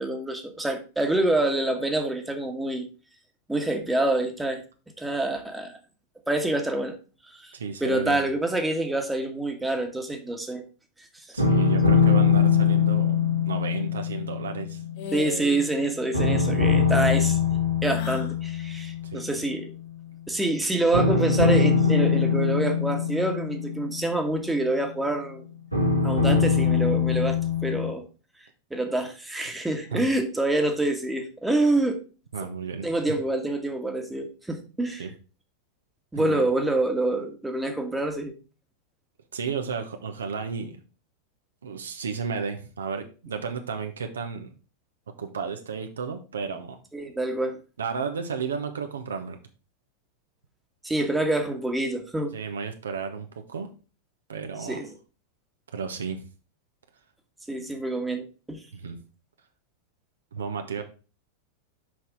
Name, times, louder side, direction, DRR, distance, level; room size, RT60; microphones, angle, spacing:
voice 1, 0.0-2.9 3.5-4.6 5.0-5.8 6.3-7.0 7.2-7.5 7.8-10.6 15.1-17.4 17.8-19.7 20.3-25.4 26.0-28.1 28.7-32.0 32.8-35.0 36.1-38.3 46.9-47.6 50.8-52.3 54.6-54.9 57.5-58.6, right 2 dB, 5° right, 5 dB, 1.4 m, -26 dB
voice 2, 7.5-8.2 11.3-13.2 13.4-14.8 19.1-19.3 29.9-30.1 32.3-33.2 35.0-35.1 36.1-36.4 39.3-40.8 41.6-44.5 45.2-46.8 47.8-49.4 52.3-53.7 54.3-54.8 55.7-56.2 58.7-59.0 60.3-60.8, right 5 dB, 70° right, 6 dB, 1.0 m, -33 dB
sound 1, 11.4-15.7 16.1-19.4 20.9-24.9 25.7-27.9, left 5 dB, 90° right, 1.9 m, -23 dB
sound 2, 15.0-15.8 16.1-16.6 17.8-18.4, left 5 dB, 50° left, 1.4 m, -38 dB
6.3 x 5.6 x 4.7 m, 0.35 s
figure-of-eight pair, 90°, 0 cm